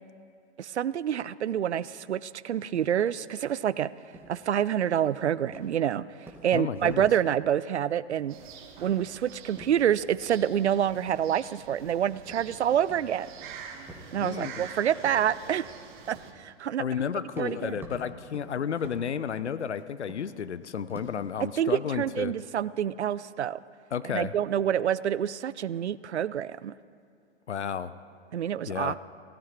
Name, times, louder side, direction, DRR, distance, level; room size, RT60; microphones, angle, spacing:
voice 1, 0.6-3.9 4.3-8.4 8.8-13.3 14.1-15.8 16.1-16.8 17.4-17.8 21.6-23.6 24.0-26.7 28.3-29.0, right 9 dB, 75° right, 19 dB, 0.5 m, -27 dB
sound 1, 2.7-3.1 3.4-3.7 4.1-4.5 5.0-5.3 5.5-5.9 6.1-7.1 7.4-7.8 8.1-8.5 8.8-10.1 10.5-10.8 11.1-11.9 12.2-13.2 13.9-14.1 14.6-14.7 15.0-15.3 16.0-16.3 16.9-17.0 17.3-20.5 20.9-21.3 21.7-22.6, right 2 dB, 5° right, 2.1 m, -49 dB
voice 2, 6.5-7.1 14.2-14.7 16.8-22.3 23.9-24.3 27.5-27.9 28.7-29.0, left 7 dB, 75° left, 14 dB, 0.7 m, -32 dB
sound 2, 8.3-16.3, right 7 dB, 45° right, 1.5 m, -46 dB
16.5 x 14.0 x 4.5 m, 2.4 s
figure-of-eight pair, 105°, 34 cm